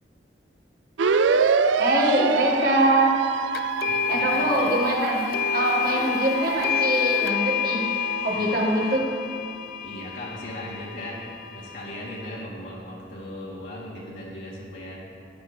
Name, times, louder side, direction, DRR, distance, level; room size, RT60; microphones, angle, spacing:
sound 1, 1.0-9.0, right 5 dB, 90° right, 0.5 m, -27 dB
voice 1, 1.8-3.1 4.1-5.2 5.5-7.8 8.2-9.1, right 1 dB, 50° right, -3 dB, 1.9 m, -23 dB
sound 2, 3.5-12.4, left 10 dB, 50° left, 0.4 m, -29 dB
voice 2, 3.8-4.5 8.3-8.5 9.8-15.0, left 1 dB, 75° left, -7 dB, 3.2 m, -37 dB
14.5 x 11.5 x 3.4 m, 2.4 s
head